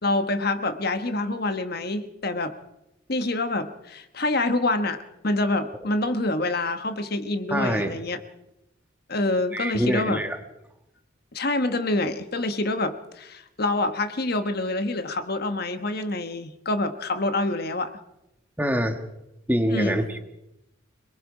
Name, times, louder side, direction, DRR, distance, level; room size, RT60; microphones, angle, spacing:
voice 1, 0.0-2.5 3.1-8.2 9.1-10.2 11.3-17.9 19.7-20.1, left 2 dB, 50° left, 9 dB, 1.2 m, -26 dB
voice 2, 7.5-7.9 9.5-10.4 18.6-19.0 19.5-20.2, equal, 10° right, 6 dB, 1.5 m, -25 dB
26.5 x 20.5 x 4.9 m, 0.87 s
head